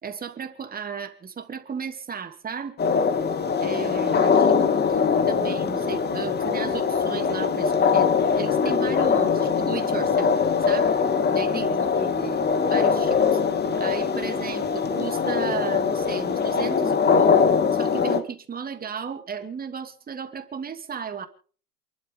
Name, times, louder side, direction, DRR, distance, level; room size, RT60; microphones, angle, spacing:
voice 1, 0.0-2.8 3.6-5.0 5.3-11.0 11.3-13.4 13.8-17.3 17.7-21.3, right 6 dB, 20° right, 7 dB, 2.6 m, -35 dB
sound 1, 2.8-18.2, left 6 dB, 20° left, 2.2 m, -22 dB
28.0 x 12.0 x 3.6 m, 0.41 s
figure-of-eight pair, 95°, 47 cm